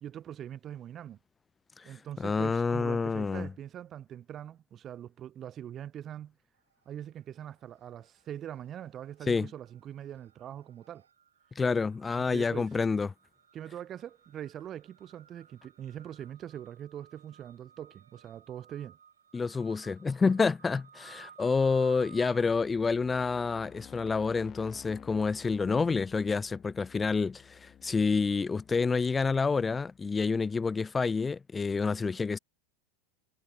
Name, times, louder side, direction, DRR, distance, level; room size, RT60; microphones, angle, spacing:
voice 1, 0.0-1.2 1.8-6.4 6.9-11.0 12.2-12.7 13.5-19.0, right 10 dB, 35° right, 0.7 m, -42 dB
voice 2, 2.2-3.5 9.3-9.5 11.6-13.1 19.3-32.4, left 4 dB, 15° left, 0.6 m, -28 dB
sound 1, 6.6-7.2 7.5-24.1, right 7 dB, 80° right, 5.8 m, -58 dB
sound 2, 21.8-30.6, left 10 dB, 35° left, 7.6 m, -54 dB
figure-of-eight pair, 85°, 0 cm